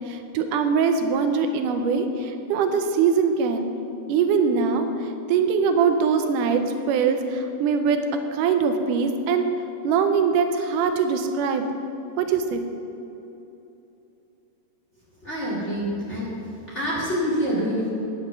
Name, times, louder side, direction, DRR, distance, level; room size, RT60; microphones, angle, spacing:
voice 1, 0.1-3.7 4.1-4.9 5.3-6.6 6.9-8.0 8.3-9.5 9.8-11.7 12.2-12.6, right 6 dB, 80° right, 6 dB, 2.2 m, -22 dB
voice 2, 15.2-16.3 16.7-17.9, equal, 25° left, -6 dB, 1.8 m, -26 dB
9.6 x 7.2 x 6.6 m, 2.9 s
omnidirectional pair, 3.7 m